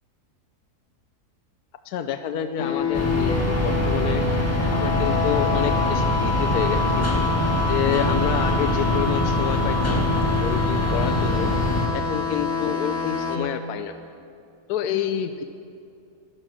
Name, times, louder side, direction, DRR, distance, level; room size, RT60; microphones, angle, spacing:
voice 1, 1.8-4.2 4.7-7.1 7.7-11.5 11.9-14.0 14.7-15.4, left 9 dB, 70° left, 8 dB, 1.1 m, -28 dB
sound 1, 2.6-13.4, left 5 dB, 55° left, 1.5 m, -27 dB
sound 2, 2.9-11.9, left 1 dB, 10° left, 1.3 m, -24 dB
sound 3, 6.2-11.7, equal, 25° right, 2.1 m, -43 dB
15.5 x 10.5 x 6.1 m, 2.5 s
omnidirectional pair, 1.7 m